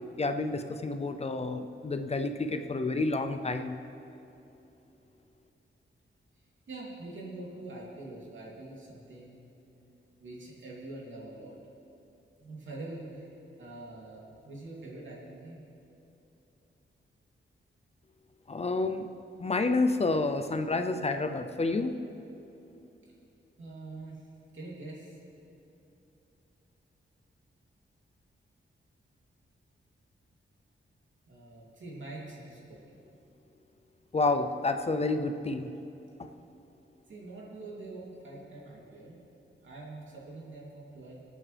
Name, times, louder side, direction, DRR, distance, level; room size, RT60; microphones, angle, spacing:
voice 1, 0.2-3.8 18.5-19.1 19.4-22.0 34.1-35.7, left 3 dB, 30° left, 8 dB, 0.6 m, -29 dB
voice 2, 6.3-9.5 10.2-11.6 12.4-13.3 13.6-15.6 23.6-24.3 24.5-25.2 31.3-33.0 36.3-36.4 37.1-39.2 39.6-41.2, right 2 dB, 75° right, -5 dB, 3.1 m, -44 dB
24.5 x 8.7 x 3.5 m, 2.9 s
wide cardioid pair, 115°, 20 cm